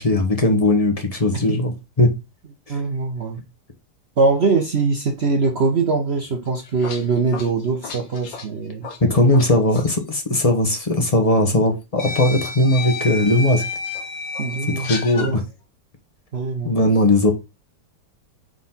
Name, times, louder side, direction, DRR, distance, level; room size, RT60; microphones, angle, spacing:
voice 1, 0.0-2.1 2.7-2.8 9.0-13.6 14.8-15.4 16.6-17.3, left 1 dB, 25° left, 0.8 m, -18 dB
voice 2, 2.7-3.4 4.2-8.9 14.4-15.4 16.3-16.7, right 4 dB, 50° right, 0.8 m, -22 dB
sound 1, 6.5-9.5 9.7-9.9 11.1-11.2 12.0-15.3, left 4 dB, 80° left, 1.9 m, -31 dB
4.7 x 3.9 x 5.6 m
omnidirectional pair, 2.0 m